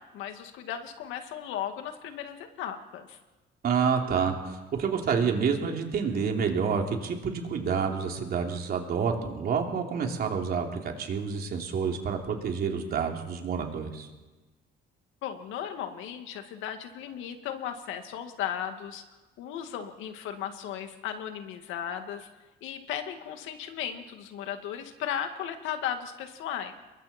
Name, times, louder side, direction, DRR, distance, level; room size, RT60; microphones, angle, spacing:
voice 1, 0.0-3.2 15.2-19.0 19.4-22.3 22.6-26.7, left 9 dB, 85° left, 6 dB, 2.2 m, -36 dB
voice 2, 3.6-14.1, right 6 dB, 50° right, 2 dB, 3.2 m, -28 dB
28.0 x 22.5 x 4.5 m, 1.2 s
cardioid pair, 120°, 20 cm